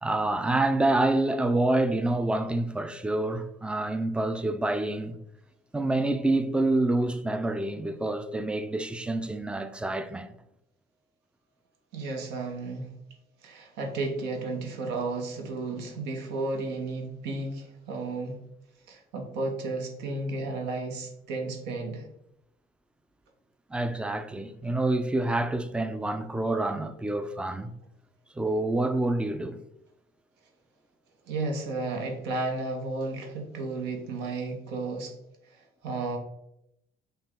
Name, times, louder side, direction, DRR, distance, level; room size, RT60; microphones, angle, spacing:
voice 1, 0.0-5.2 5.7-10.3 23.7-27.7 28.4-29.6, right 2 dB, 5° right, 0.3 m, -27 dB
voice 2, 11.9-12.9 13.4-18.4 18.9-22.1 31.3-35.1 35.5-36.2, right 3 dB, 85° right, 1.0 m, -33 dB
5.4 x 2.3 x 3.6 m
cardioid pair, 110°, 17 cm